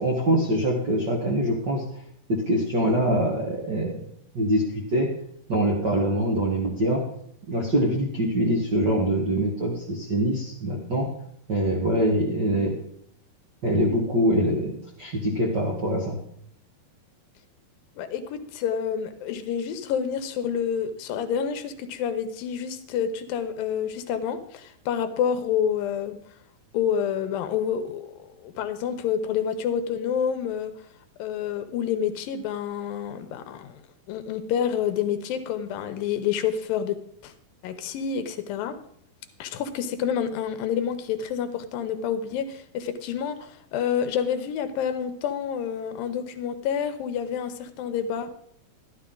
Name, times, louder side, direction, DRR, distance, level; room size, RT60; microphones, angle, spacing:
voice 1, 0.0-1.8 2.3-4.1 4.3-5.1 5.5-7.0 7.5-11.1 11.5-12.7 13.6-16.2, right 1 dB, 80° right, -2 dB, 0.9 m, -24 dB
voice 2, 18.0-26.2 26.7-30.7 31.2-33.8 34.1-37.3 37.6-38.8 39.4-48.3, left 8 dB, 75° left, 9 dB, 2.3 m, -28 dB
12.5 x 12.5 x 3.8 m, 0.67 s
omnidirectional pair, 4.6 m